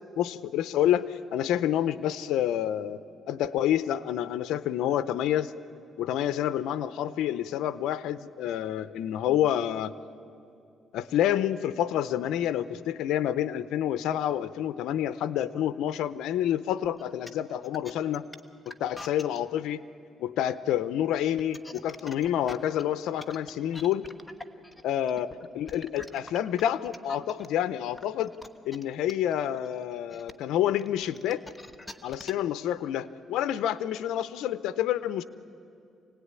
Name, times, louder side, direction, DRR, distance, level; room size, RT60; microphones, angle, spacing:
voice 1, 0.2-3.0 3.3-5.5 6.0-9.9 10.9-18.2 18.8-19.8 20.2-24.0 24.8-25.3 25.5-28.3 28.7-31.4 32.0-35.2, left 11 dB, 85° left, 14 dB, 0.7 m, -28 dB
sound 1, 16.8-19.4 21.2-27.5 28.0-32.5, left 2 dB, 15° left, 1.3 m, -45 dB
26.5 x 18.5 x 9.7 m, 2.5 s
cardioid pair, 90°, 0 cm